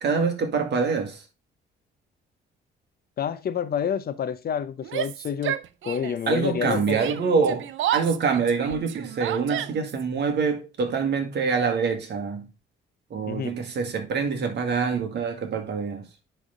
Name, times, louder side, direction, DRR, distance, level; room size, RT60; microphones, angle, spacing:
voice 1, 0.0-1.2 6.3-12.5 13.1-16.1, right 5 dB, 60° right, 1.8 m, -25 dB
voice 2, 3.2-5.6 5.8-7.0 13.2-13.5, left 8 dB, 50° left, 0.7 m, -28 dB
Yell, 4.8-6.3 6.6-10.0, right 11 dB, 75° right, 0.6 m, -31 dB
10.0 x 3.5 x 3.8 m
cardioid pair, 90°, 20 cm